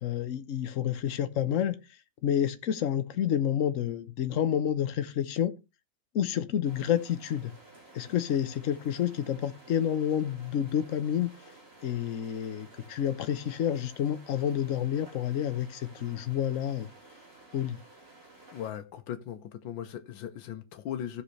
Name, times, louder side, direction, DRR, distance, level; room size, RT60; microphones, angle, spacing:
voice 1, 0.0-1.7 2.2-5.5 6.1-7.5 7.9-11.3 11.8-16.9 17.5-17.8, left 9 dB, 55° left, 1.1 m, -29 dB
sound 1, 6.6-18.7, right 2 dB, 30° right, 3.3 m, -54 dB
voice 2, 18.5-21.2, left 10 dB, 85° left, 1.7 m, -38 dB
16.0 x 5.6 x 3.2 m
omnidirectional pair, 2.0 m